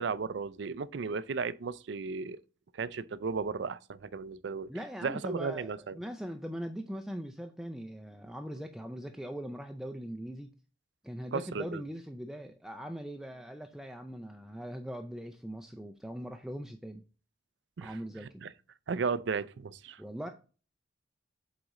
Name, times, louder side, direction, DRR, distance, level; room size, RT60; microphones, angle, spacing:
voice 1, 0.0-2.4 2.7-4.7 5.0-6.0 11.3-11.8 17.8-17.9 18.4-18.5 18.9-20.0, right 5 dB, 70° right, 0.4 m, -34 dB
voice 2, 4.7-10.5 11.0-17.0 17.8-18.4 20.0-20.3, equal, ahead, 0.4 m, -41 dB
7.8 x 4.1 x 3.7 m
head